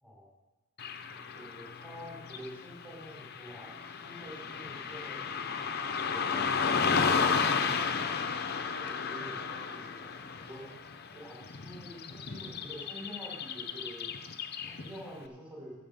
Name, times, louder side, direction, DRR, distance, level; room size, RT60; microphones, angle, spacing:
Car passing by / Traffic noise roadway noise, 0.8-15.1, left 5 dB, 45° left, 0.6 m, -33 dB
voice 1, 1.1-5.6 6.0-7.9 8.5-10.1 10.4-10.7 11.1-14.1 14.6-15.7, equal, 5° right, -5 dB, 4.1 m, -48 dB
12.5 x 7.8 x 5.5 m, 1.2 s
head